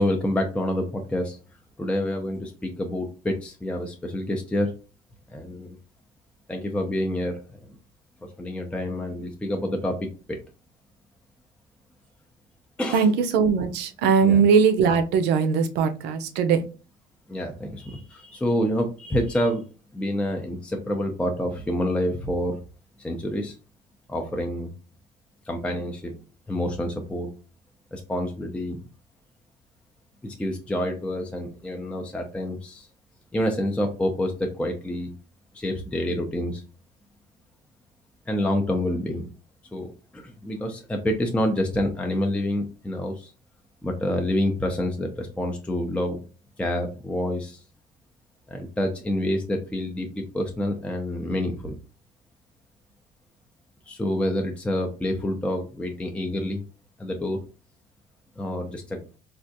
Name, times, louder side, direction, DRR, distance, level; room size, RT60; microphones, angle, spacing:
voice 1, 0.0-1.4 1.8-4.7 5.3-5.8 6.5-7.4 8.2-10.4 12.8-13.1 14.2-14.4 17.3-19.6 19.9-22.6 23.0-23.6 24.1-24.7 25.5-26.1 26.5-27.3 27.9-28.8 30.2-32.9 33.3-35.1 35.5-36.6 38.3-39.3 39.7-43.3 43.8-46.2 46.6-47.6 48.5-51.8 53.9-56.6 57.0-57.4 58.4-59.0, left 1 dB, 5° left, 0.5 m, -27 dB
voice 2, 12.9-16.6, right 6 dB, 85° right, 0.5 m, -20 dB
3.4 x 2.4 x 2.6 m
cardioid pair, 110°, 17 cm